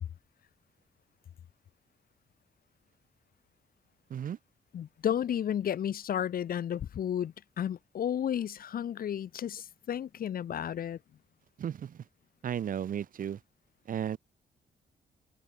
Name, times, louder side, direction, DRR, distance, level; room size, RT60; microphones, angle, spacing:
voice 1, 4.7-11.0, left 9 dB, 65° left, 1.2 m, -32 dB
voice 2, 11.6-12.0 12.4-13.4 13.9-14.2, right 9 dB, 55° right, 0.9 m, -34 dB
cardioid pair, 120°, 16 cm